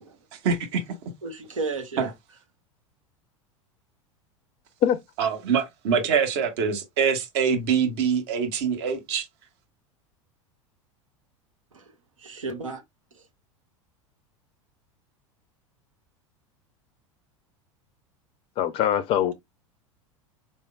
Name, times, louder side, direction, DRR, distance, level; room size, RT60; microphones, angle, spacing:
voice 1, 0.4-0.8 2.0-2.1 5.2-9.2, right 6 dB, 50° right, 1.4 m, -24 dB
voice 2, 1.2-2.1 11.7-11.9 12.2-12.8 13.1-13.2, right 3 dB, 75° right, 1.0 m, -33 dB
voice 3, 18.6-19.3, left 10 dB, 35° left, 0.5 m, -22 dB
4.2 x 3.4 x 2.3 m
figure-of-eight pair, 80°, 17 cm